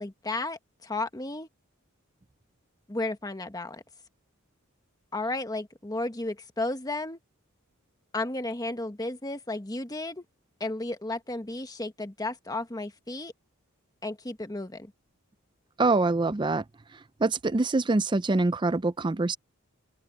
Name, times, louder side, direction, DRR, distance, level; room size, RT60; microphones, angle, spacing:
voice 1, 0.0-1.5 2.9-3.8 5.1-7.2 8.1-10.2 10.6-13.3 14.0-14.9, left 2 dB, 15° left, 1.3 m, -33 dB
voice 2, 15.8-16.6 17.2-19.4, right 3 dB, 20° right, 0.5 m, -24 dB
open air
head